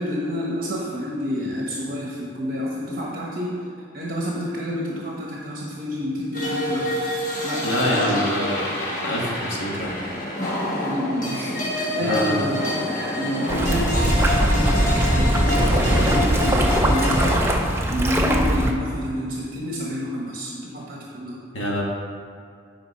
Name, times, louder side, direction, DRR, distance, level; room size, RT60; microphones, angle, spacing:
voice 1, 0.0-3.6 3.9-6.9 7.2-8.3 10.6-21.4, equal, 50° right, -3 dB, 0.9 m, -29 dB
sound 1, 6.3-17.4, left 1 dB, 40° left, 1.3 m, -27 dB
voice 2, 7.6-8.7 9.0-9.9 12.0-12.5 21.5-21.8, left 1 dB, 90° left, -3 dB, 1.6 m, -25 dB
sound 2, 13.5-18.7, right 1 dB, 15° right, 0.5 m, -20 dB
8.5 x 4.4 x 5.3 m, 2.2 s
head